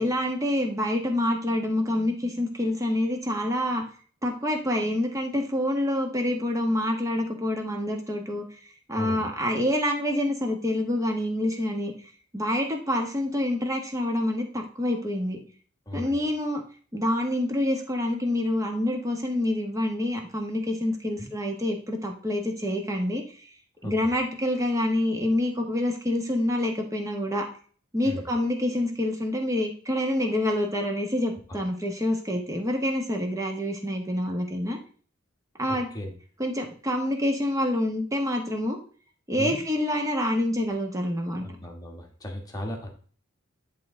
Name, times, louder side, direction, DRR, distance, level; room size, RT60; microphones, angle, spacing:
voice 1, 0.0-3.8 4.2-8.6 8.9-11.9 12.3-15.4 15.9-16.6 16.9-23.5 23.8-27.5 27.9-34.8 35.6-35.9 36.4-38.8 39.3-41.4, left 1 dB, 15° right, 3 dB, 1.3 m, -27 dB
voice 2, 9.0-9.3 15.9-16.2 21.2-21.3 23.8-24.1 28.0-28.3 31.5-31.6 35.7-36.1 39.4-39.6 41.4-42.9, left 1 dB, 20° left, 1 dB, 1.5 m, -36 dB
10.5 x 3.8 x 3.8 m, 0.43 s
head